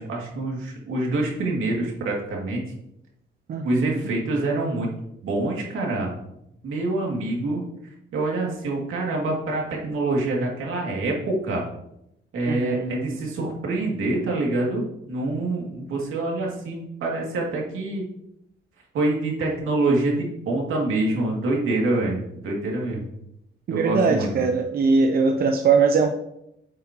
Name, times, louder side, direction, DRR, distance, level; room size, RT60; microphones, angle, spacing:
voice 1, 0.0-2.6 3.6-4.9 5.2-6.1 6.6-7.6 8.1-11.6 12.3-18.0 18.9-23.1 23.7-24.4, right 2 dB, 80° right, -2 dB, 2.4 m, -26 dB
voice 2, 3.5-4.1 12.5-13.2 23.7-26.1, right 4 dB, 50° right, 5 dB, 0.6 m, -21 dB
8.8 x 7.7 x 3.0 m, 0.81 s
cardioid pair, 145°, 21 cm